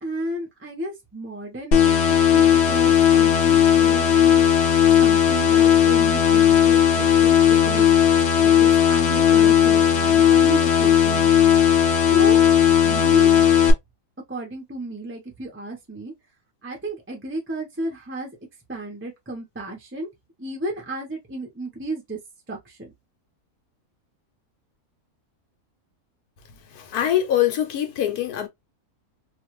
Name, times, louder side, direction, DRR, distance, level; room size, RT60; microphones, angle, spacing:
voice 1, 0.0-4.4 5.0-11.3 12.1-12.4 12.8-13.5 14.3-16.1 16.6-18.3 18.7-20.1 20.4-22.2 22.5-22.9, right 1 dB, 10° right, 0.6 m, -33 dB
sound 1, 1.7-13.7, left 9 dB, 65° left, 0.7 m, -16 dB
voice 2, 26.7-28.5, left 11 dB, 85° left, 1.2 m, -23 dB
2.5 x 2.4 x 3.0 m
omnidirectional pair, 1.6 m